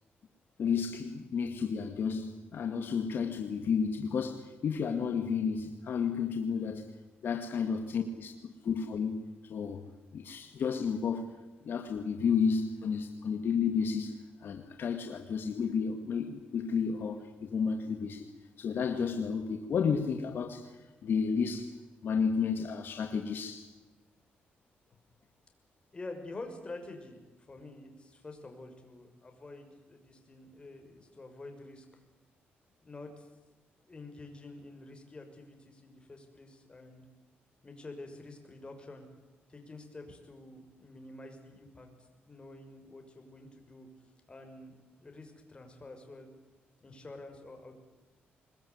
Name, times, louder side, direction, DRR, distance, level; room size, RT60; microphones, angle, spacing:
voice 1, 0.6-6.9 7.2-9.2 9.5-9.8 10.1-11.3 11.6-18.3 18.6-21.7 22.0-23.7, left 6 dB, 60° left, 2.2 m, -32 dB
voice 2, 25.9-32.0 32.8-33.3 33.9-37.0 37.6-39.1 39.5-41.9 42.2-43.9 44.3-46.3 46.8-47.7, left 2 dB, 25° left, 6.2 m, -48 dB
26.0 x 21.0 x 9.7 m
cardioid pair, 110°, 4 cm